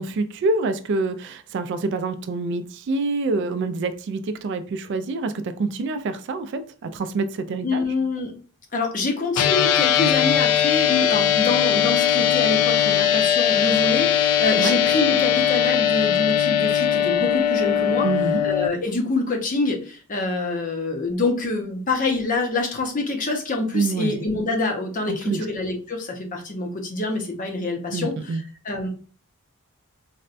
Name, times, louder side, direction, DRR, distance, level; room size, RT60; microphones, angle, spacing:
voice 1, 0.0-7.9 14.6-14.7 18.0-18.4 23.7-24.2 25.1-25.4 27.9-28.4, right 3 dB, 55° right, 10 dB, 0.3 m, -26 dB
voice 2, 7.6-8.3 8.7-18.1 18.4-28.4 28.6-28.9, left 3 dB, 35° left, 2 dB, 0.7 m, -26 dB
sound 1, 9.3-18.7, left 9 dB, 85° left, 0.3 m, -20 dB
4.1 x 2.2 x 2.5 m, 0.39 s
head